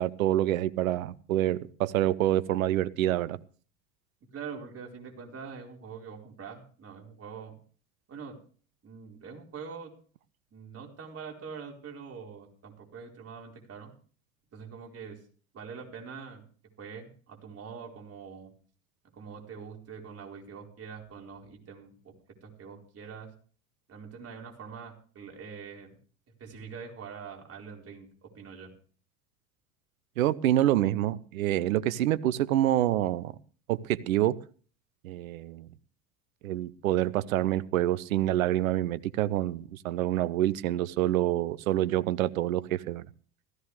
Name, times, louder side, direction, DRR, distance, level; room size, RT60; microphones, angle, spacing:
voice 1, 0.0-3.4 30.2-33.3 33.7-34.4 35.0-35.7 36.4-43.1, right 13 dB, 65° right, 0.9 m, -27 dB
voice 2, 4.3-7.5 8.1-8.4 8.8-9.9 10.5-13.9 14.5-15.2 15.5-16.4 16.8-18.5 19.1-21.9 22.4-23.3 23.9-26.0 26.4-28.7, right 6 dB, 30° right, 4.5 m, -44 dB
16.0 x 15.0 x 3.3 m
figure-of-eight pair, 75°, 45 cm